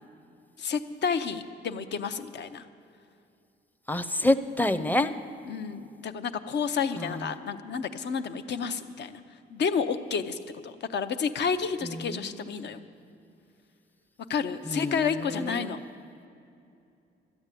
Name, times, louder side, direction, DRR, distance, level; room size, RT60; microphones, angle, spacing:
voice 1, 0.6-2.7 5.5-9.2 9.5-12.8 14.3-15.8, left 6 dB, 60° left, 9 dB, 0.8 m, -30 dB
voice 2, 3.9-5.1 7.0-7.4 11.8-12.7 14.7-15.7, left 1 dB, 10° left, 11 dB, 0.6 m, -28 dB
13.0 x 8.9 x 8.4 m, 2.6 s
cardioid pair, 90°, 20 cm